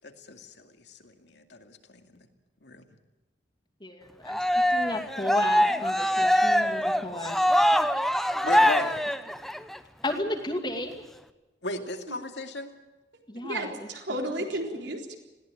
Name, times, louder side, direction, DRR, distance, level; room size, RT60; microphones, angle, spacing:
voice 1, 0.0-2.1 2.6-2.8 8.4-9.0 11.6-12.7, left 2 dB, 70° left, 5 dB, 2.5 m, -36 dB
voice 2, 3.8-4.4 4.7-7.6 10.0-10.9 13.3-13.7, left 1 dB, 25° left, 5 dB, 2.5 m, -33 dB
Cheering, 4.3-9.8, equal, ahead, 0.9 m, -23 dB
voice 3, 13.4-15.2, right 1 dB, 75° right, 3 dB, 3.9 m, -33 dB
20.5 x 17.5 x 9.0 m, 1.1 s
head